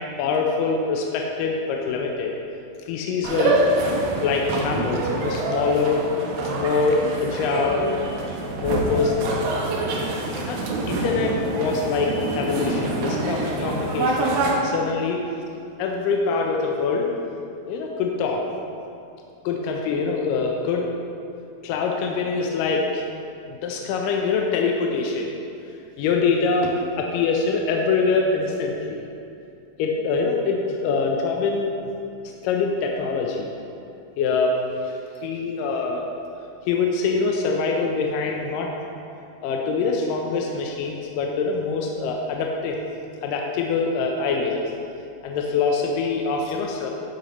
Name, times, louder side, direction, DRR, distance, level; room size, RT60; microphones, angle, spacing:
voice 1, 0.0-2.3 2.9-3.6 4.2-6.0 6.4-7.9 8.5-9.5 10.3-10.6 10.9-15.2 15.8-17.1 17.7-18.4 19.4-20.9 21.6-23.0 23.5-25.3 26.0-29.0 29.8-31.9 32.4-33.5 34.2-36.1 36.7-38.7 39.4-42.8 43.2-44.7 45.2-46.9, left 4 dB, 80° left, 1 dB, 2.0 m, -24 dB
sound 1, 3.2-14.5, right 2 dB, 75° right, 2.6 m, -26 dB
12.0 x 7.4 x 3.0 m, 2.6 s
omnidirectional pair, 4.4 m